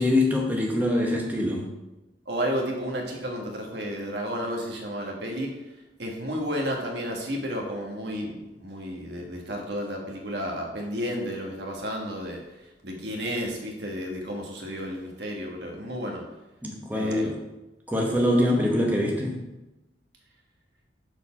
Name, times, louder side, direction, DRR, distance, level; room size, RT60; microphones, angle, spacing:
voice 1, 0.0-1.7 16.6-17.4 17.9-19.4, left 1 dB, 10° right, -1 dB, 0.9 m, -24 dB
voice 2, 2.3-5.6 6.0-12.4 12.8-16.2 16.9-17.3, equal, 65° right, 1 dB, 1.4 m, -32 dB
6.5 x 4.5 x 5.7 m, 1.0 s
head